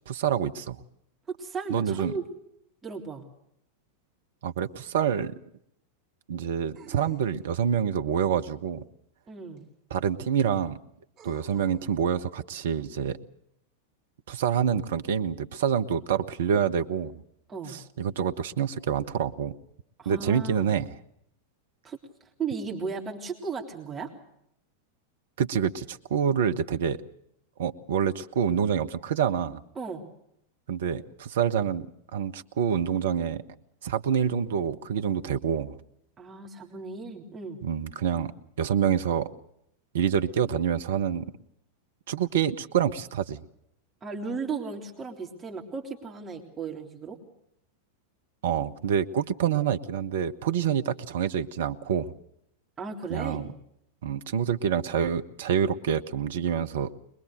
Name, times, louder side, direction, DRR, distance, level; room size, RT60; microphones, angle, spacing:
voice 1, 0.1-0.8 1.7-2.1 4.4-5.3 6.3-8.8 9.9-10.8 11.2-13.2 14.3-17.2 18.0-19.5 20.0-20.8 25.4-27.0 27.6-29.6 30.7-31.9 32.1-33.4 33.8-35.7 37.6-38.3 38.6-39.3 39.9-41.3 42.1-43.4 48.4-52.1 53.1-53.5 54.0-56.9, right 8 dB, 60° right, 9 dB, 1.2 m, -27 dB
voice 2, 1.3-2.2 2.8-3.2 9.3-9.7 17.5-17.8 20.0-20.8 21.8-22.0 22.4-24.1 29.8-30.1 36.2-37.6 44.0-47.2 52.8-53.6, right 5 dB, 20° right, 1 dB, 3.4 m, -35 dB
sound 1, 4.6-4.7 6.7-7.7 9.6-9.7 11.2-11.9, right 6 dB, 35° right, 7.6 m, -52 dB
23.0 x 22.0 x 6.6 m, 0.76 s
figure-of-eight pair, 90°, 0 cm